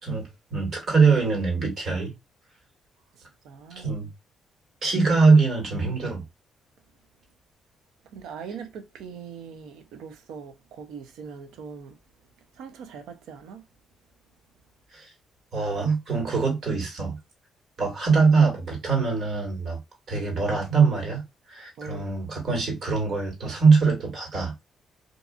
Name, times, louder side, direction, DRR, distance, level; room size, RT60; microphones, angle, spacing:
voice 1, 0.0-2.1 3.7-4.1 4.8-6.2 14.9-15.1 15.5-17.2 17.8-19.8 20.1-21.2 21.5-24.5, right 4 dB, 55° right, 1.7 m, -22 dB
voice 2, 3.1-4.0 8.0-12.0 12.5-13.7 21.8-22.1, right 6 dB, 85° right, 0.6 m, -41 dB
2.6 x 2.6 x 2.2 m
cardioid pair, 90°, 0 cm